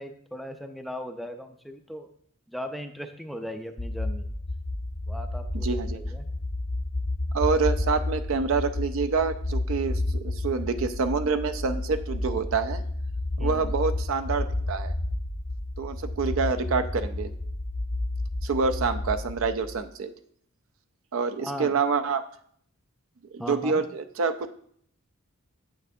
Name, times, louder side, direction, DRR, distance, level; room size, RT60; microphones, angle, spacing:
voice 1, 0.0-2.1 2.5-4.3 5.1-6.3 13.4-13.7 21.4-21.7 23.4-23.8, equal, ahead, 6 dB, 0.4 m, -38 dB
sound 1, 3.8-19.8, left 2 dB, 55° left, 0.9 m, -31 dB
voice 2, 5.6-6.0 7.3-12.8 13.4-14.9 15.8-17.3 18.4-20.1 21.1-22.2 23.3-24.3, right 5 dB, 65° right, 8 dB, 0.5 m, -27 dB
8.3 x 6.5 x 2.7 m, 0.64 s
head